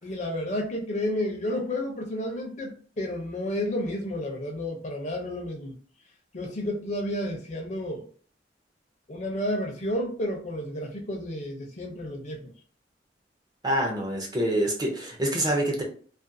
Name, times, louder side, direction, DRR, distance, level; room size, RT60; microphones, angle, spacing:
voice 1, 0.0-5.7 6.3-8.0 9.1-12.5, left 1 dB, 40° left, 0.5 m, -31 dB
voice 2, 13.6-15.8, right 1 dB, 20° right, 0.5 m, -26 dB
2.4 x 2.2 x 2.5 m
head